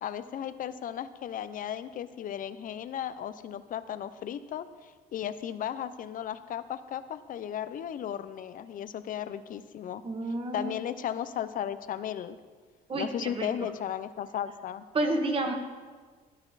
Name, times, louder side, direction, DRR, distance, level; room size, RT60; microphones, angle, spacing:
voice 1, 0.0-10.0 10.5-12.4 12.9-14.9, left 10 dB, 55° left, 13 dB, 0.8 m, -35 dB
voice 2, 10.0-10.8 12.9-13.5 14.9-15.5, right 2 dB, 30° right, 3 dB, 2.0 m, -30 dB
16.0 x 10.5 x 4.1 m, 1.5 s
cardioid pair, 110°, 17 cm